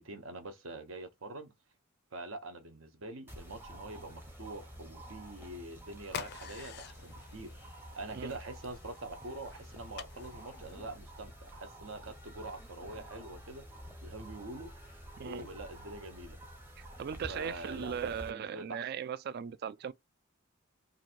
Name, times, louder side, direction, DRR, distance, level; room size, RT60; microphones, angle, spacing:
voice 1, 0.0-1.5 2.1-7.7 7.9-13.7 14.0-16.4 17.3-18.8, right 2 dB, 70° right, 0.9 m, -45 dB
sound 1, 3.3-18.3, equal, 10° right, 0.7 m, -50 dB
sound 2, 6.0-11.2, left 7 dB, 50° left, 0.4 m, -48 dB
voice 2, 15.2-15.5 16.8-19.9, right 8 dB, 50° right, 0.3 m, -38 dB
2.9 x 2.6 x 4.3 m
head